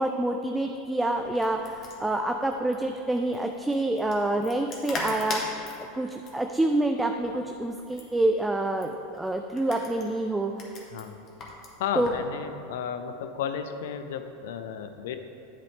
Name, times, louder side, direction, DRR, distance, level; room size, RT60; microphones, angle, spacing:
voice 1, 0.0-5.6 5.9-10.5 12.0-12.1, right 1 dB, 10° right, 4 dB, 0.5 m, -27 dB
sound 1, 1.1-12.3, left 2 dB, 40° left, 1.8 m, -41 dB
voice 2, 11.8-15.2, left 7 dB, 65° left, 9 dB, 0.6 m, -33 dB
11.0 x 7.6 x 3.4 m, 2.9 s
figure-of-eight pair, 85°, 0 cm